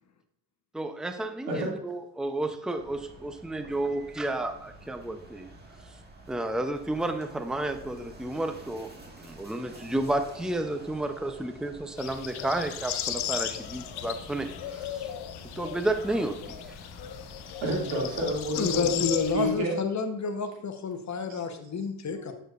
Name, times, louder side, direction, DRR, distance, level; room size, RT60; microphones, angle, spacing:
voice 1, 0.7-5.5 5.8-6.0 6.3-8.9 9.2-15.1 15.5-16.8, right 2 dB, ahead, 7 dB, 0.7 m, -32 dB
sound 1, 2.8-19.6, right 2 dB, 25° right, 1.7 m, -49 dB
sound 2, 12.0-19.3, left 10 dB, 70° left, 0.8 m, -35 dB
voice 2, 17.6-19.0 19.3-19.8 21.3-21.4 22.1-22.3, right 1 dB, 90° right, -3 dB, 2.6 m, -29 dB
voice 3, 18.6-22.3, left 5 dB, 40° left, 7 dB, 1.1 m, -30 dB
9.0 x 6.7 x 2.5 m, 0.76 s
supercardioid pair, 70°, 41 cm